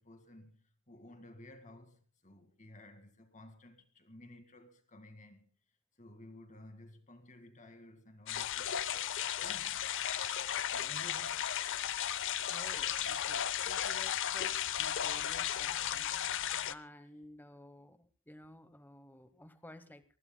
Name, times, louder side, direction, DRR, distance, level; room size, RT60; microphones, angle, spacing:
voice 1, 0.0-5.4 6.0-9.1 9.4-9.9 10.7-11.5, left 1 dB, 35° left, 2.0 m, -55 dB
sound 1, 8.3-16.7, left 10 dB, 60° left, 0.6 m, -35 dB
voice 2, 12.5-20.0, left 1 dB, 10° left, 1.0 m, -54 dB
24.0 x 20.0 x 2.2 m
head